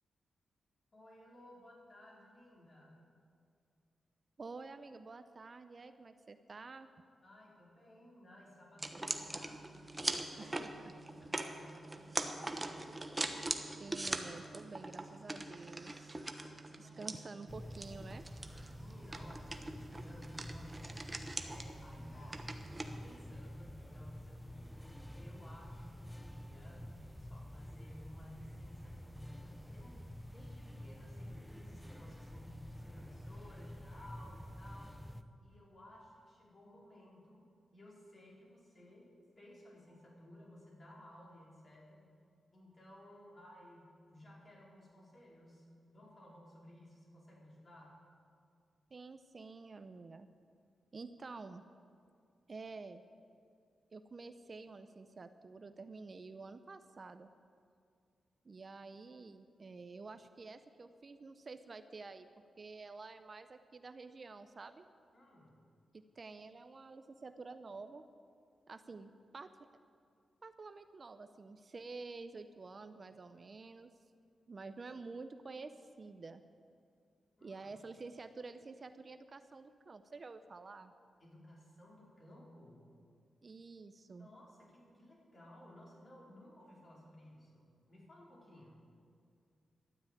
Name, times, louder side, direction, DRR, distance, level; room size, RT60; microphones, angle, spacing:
voice 1, 0.9-3.0 7.2-12.8 16.2-17.2 18.8-22.4 22.9-34.9 35.4-42.1 42.5-45.6 45.9-48.0 65.1-65.5 77.4-77.7 81.2-82.9 84.1-88.8, left 1 dB, 40° left, -4 dB, 4.6 m, -57 dB
voice 2, 4.4-6.9 10.4-11.0 13.8-16.3 16.8-18.2 48.9-50.3 50.9-51.6 52.5-53.0 53.9-57.3 58.4-62.3 62.6-64.9 66.2-68.0 68.7-69.5 70.4-73.9 74.5-76.4 77.4-80.9 83.4-84.3, right 3 dB, 40° right, 10 dB, 0.6 m, -49 dB
sound 1, 8.8-23.0, right 2 dB, 20° right, 1.1 m, -42 dB
sound 2, 17.5-35.2, equal, ahead, 0.7 m, -49 dB
12.5 x 9.4 x 9.0 m, 2.3 s
cardioid pair, 95°, 0 cm